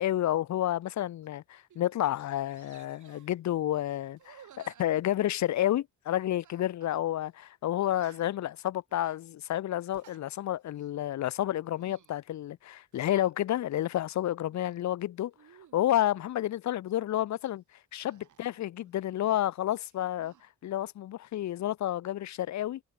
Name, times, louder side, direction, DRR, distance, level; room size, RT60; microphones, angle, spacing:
voice 1, 0.0-15.3 15.7-17.6 17.9-20.3 20.6-22.8, left 12 dB, 60° left, 0.7 m, -30 dB
sound 1, 1.2-1.4 1.7-2.1 2.5-3.3 4.1-5.7 6.4-6.9 7.2-7.3 7.8-8.4 8.9-9.2 9.8-10.2 10.7-11.0 11.6-12.2 12.9-13.3 13.8-14.8 15.3-16.3 18.1-19.5 19.7-20.4, right 10 dB, 70° right, 6.3 m, -58 dB
cardioid pair, 90°, 31 cm